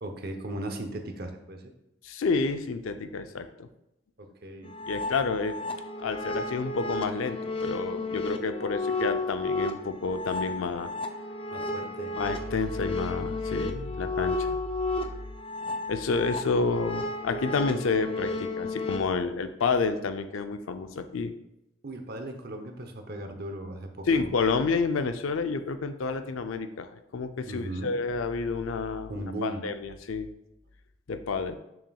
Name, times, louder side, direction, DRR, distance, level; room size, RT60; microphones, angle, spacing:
voice 1, 0.0-1.6 4.2-4.7 11.5-12.1 21.8-24.3 27.5-27.9 29.1-29.6, right 1 dB, 50° right, 5 dB, 0.8 m, -37 dB
voice 2, 2.0-3.7 4.9-5.5 6.0-10.9 12.2-14.6 15.9-21.3 24.1-29.1 29.4-30.3 31.1-31.6, left 4 dB, 85° left, 9 dB, 0.5 m, -29 dB
sound 1, 4.6-19.0, left 2 dB, 25° left, 0.4 m, -33 dB
7.1 x 6.0 x 2.3 m, 0.87 s
head